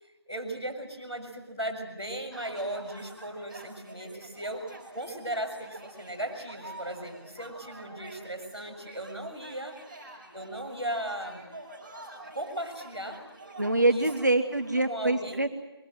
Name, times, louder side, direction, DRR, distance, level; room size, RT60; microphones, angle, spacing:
voice 1, 0.3-9.8 10.3-11.5 12.3-13.2 13.9-14.1 14.9-15.5, right 1 dB, 10° left, -9 dB, 3.8 m, -37 dB
sound 1, 2.3-14.9, right 1 dB, 20° right, 6.0 m, -47 dB
voice 2, 13.6-15.5, right 2 dB, 45° right, 7 dB, 1.2 m, -25 dB
23.5 x 22.0 x 7.8 m, 1.1 s
figure-of-eight pair, 175°, 14 cm